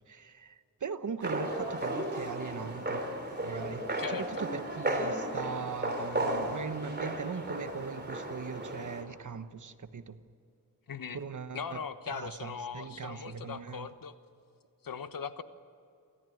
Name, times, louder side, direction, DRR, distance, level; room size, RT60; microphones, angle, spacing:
voice 1, 0.1-3.0 3.4-3.8 4.1-10.2 11.1-11.8 12.1-13.9, right 6 dB, 55° right, 1.1 m, -40 dB
sound 1, 1.2-9.0, right 1 dB, 30° right, 3.6 m, -34 dB
voice 2, 4.0-4.4 10.9-11.2 11.5-14.2 14.8-15.4, left 6 dB, 70° left, 1.2 m, -39 dB
29.0 x 14.0 x 9.3 m
wide cardioid pair, 95°, 35 cm